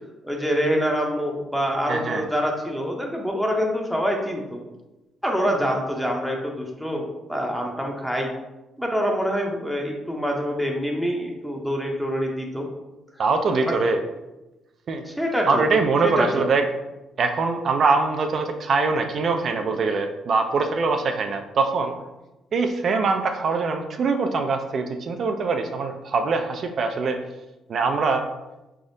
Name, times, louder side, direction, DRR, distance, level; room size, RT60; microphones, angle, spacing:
voice 1, 0.2-4.6 5.2-8.3 8.8-12.7 15.1-15.6 16.0-16.3, equal, ahead, 0 dB, 0.6 m, -25 dB
voice 2, 1.9-2.2 13.2-14.0 14.9-15.0 15.5-16.6 17.2-21.9 22.5-27.2 27.7-28.3, right 4 dB, 55° right, 5 dB, 0.3 m, -23 dB
3.7 x 3.4 x 2.6 m, 1.0 s
cardioid pair, 90°, 0 cm